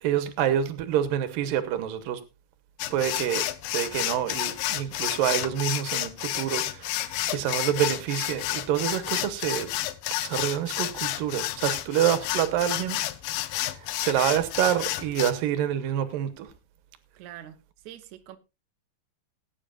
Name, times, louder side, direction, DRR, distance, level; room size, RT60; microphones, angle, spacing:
voice 1, 0.0-2.2 2.9-3.5 3.7-9.7 10.2-13.0 13.6-13.7 14.0-16.5, right 10 dB, 90° right, 2.8 m, -27 dB
sound 1, 2.8-15.3, left 14 dB, 90° left, 2.5 m, -30 dB
voice 2, 17.2-18.4, right 12 dB, 65° right, 2.2 m, -45 dB
19.5 x 9.7 x 2.4 m
omnidirectional pair, 3.9 m